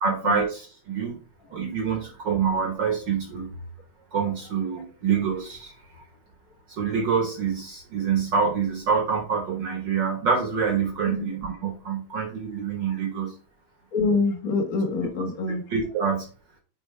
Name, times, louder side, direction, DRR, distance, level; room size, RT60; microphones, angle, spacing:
voice 1, 0.0-1.2 1.5-3.5 4.1-5.7 6.7-13.3 15.7-16.3, right 6 dB, 55° right, 1.3 m, -26 dB
voice 2, 13.9-15.6, left 3 dB, 55° left, 0.9 m, -25 dB
9.4 x 4.5 x 3.2 m
omnidirectional pair, 3.3 m